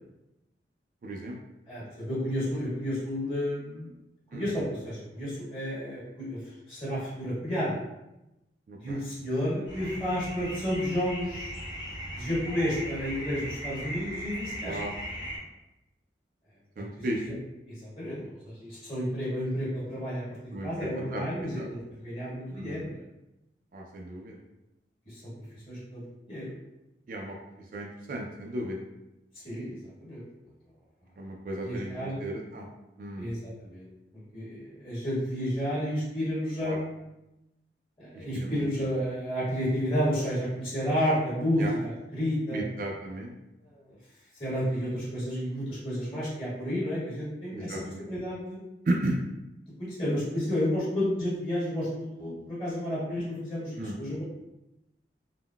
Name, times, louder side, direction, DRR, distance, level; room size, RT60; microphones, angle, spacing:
voice 1, 1.0-1.4 4.3-4.5 8.7-9.0 14.6-14.9 16.8-17.3 20.5-21.7 22.5-22.8 23.7-24.4 27.1-27.4 27.7-28.8 31.2-32.7 33.0-33.3 36.6-36.8 38.1-38.6 41.6-41.7 42.5-43.3 47.5-48.1 48.9-49.2 53.8-54.0, right 1 dB, 50° right, 1 dB, 0.3 m, -34 dB
voice 2, 1.7-3.9 4.3-6.4 6.7-7.8 8.8-11.5 12.1-14.8 16.8-17.3 17.7-23.0 25.0-26.5 29.4-30.2 31.6-32.2 33.2-33.9 34.1-37.0 38.0-42.6 43.6-43.9 44.4-48.6 49.8-54.2, equal, 30° left, -9 dB, 1.5 m, -31 dB
sound 1, 9.7-15.4, equal, 75° left, 1.3 m, -38 dB
3.7 x 2.0 x 2.2 m, 0.93 s
head